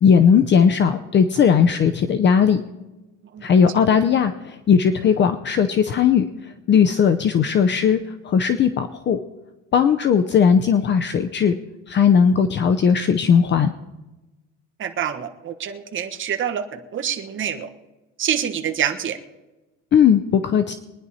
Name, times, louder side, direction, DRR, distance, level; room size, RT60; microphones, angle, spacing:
voice 1, 0.0-2.6 3.4-9.2 9.7-11.6 11.9-13.7 19.9-20.7, left 7 dB, 35° left, 9 dB, 0.6 m, -17 dB
voice 2, 14.8-17.7 18.2-19.2, right 9 dB, 40° right, 5 dB, 1.3 m, -26 dB
22.5 x 10.0 x 4.2 m, 1.1 s
cardioid pair, 145°, 32 cm